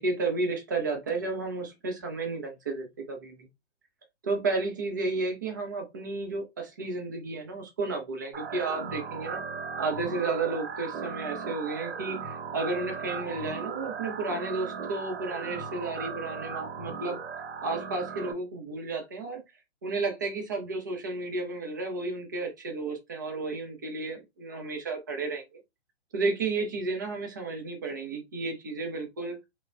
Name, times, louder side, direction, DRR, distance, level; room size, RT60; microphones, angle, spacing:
voice 1, 0.0-3.5 4.2-9.4 9.8-17.2 17.6-19.4 19.8-25.4 26.1-29.4, right 3 dB, 20° right, 0.3 m, -32 dB
sound 1, 8.3-18.3, right 5 dB, 70° right, 0.7 m, -37 dB
3.1 x 2.1 x 2.4 m
hypercardioid pair, 135°, 34 cm